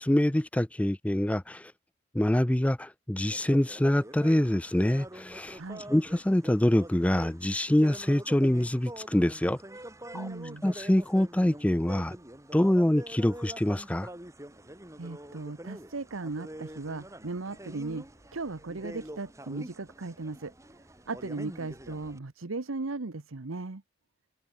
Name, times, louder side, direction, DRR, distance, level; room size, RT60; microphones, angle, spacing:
voice 1, 0.0-1.7 2.1-5.6 5.9-9.6 10.1-10.3 10.6-12.2 12.5-14.1, left 1 dB, 5° left, 0.4 m, -25 dB
sound 1, 3.2-22.2, right 1 dB, 15° right, 1.9 m, -45 dB
voice 2, 10.1-10.6 15.0-18.1 18.3-20.5 21.1-23.8, right 3 dB, 80° right, 1.0 m, -37 dB
head